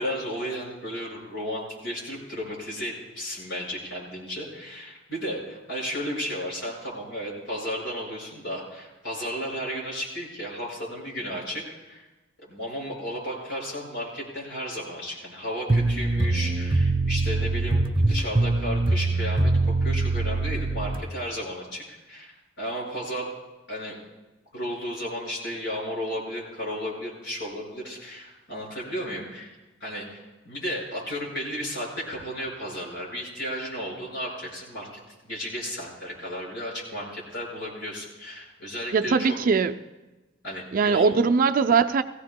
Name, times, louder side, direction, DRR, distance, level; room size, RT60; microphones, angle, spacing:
voice 1, 0.0-12.0 12.4-23.3 23.7-24.0 24.5-29.6 29.8-39.4 40.4-41.1, equal, 65° left, -4 dB, 5.4 m, -34 dB
sound 1, 15.7-21.0, right 2 dB, 25° right, 0.7 m, -23 dB
voice 2, 38.9-39.7 40.7-42.0, right 5 dB, 45° right, 10 dB, 0.4 m, -21 dB
19.0 x 15.5 x 2.2 m, 1.1 s
head